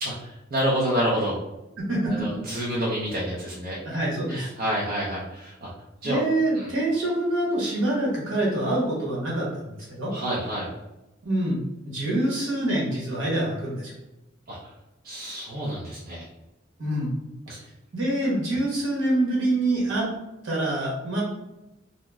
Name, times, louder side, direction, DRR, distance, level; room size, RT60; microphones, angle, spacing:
voice 1, 0.0-1.4 2.0-3.8 4.3-5.7 6.0-6.2 6.5-6.7 10.1-10.7 14.5-14.7 15.0-16.3 17.5-17.6 18.2-18.4, equal, 45° right, -6 dB, 0.5 m, -28 dB
voice 2, 1.8-2.2 3.8-4.5 6.0-10.1 11.2-11.6 11.8-13.9 16.8-17.1 17.5-17.6 17.9-20.1 20.4-21.2, right 1 dB, 70° right, -4 dB, 1.2 m, -25 dB
2.8 x 2.0 x 3.4 m, 0.99 s
head